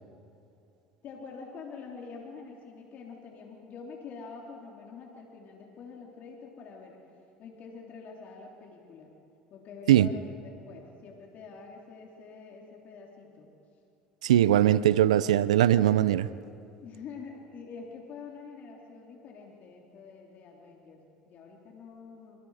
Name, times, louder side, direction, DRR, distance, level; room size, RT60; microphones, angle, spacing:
voice 1, 1.0-7.0 7.4-9.2 9.5-13.5 16.8-22.4, left 5 dB, 55° left, 0 dB, 3.5 m, -46 dB
voice 2, 14.2-16.3, right 12 dB, 85° right, 17 dB, 0.6 m, -21 dB
27.5 x 27.0 x 5.0 m, 2.8 s
hypercardioid pair, 80°, 3 cm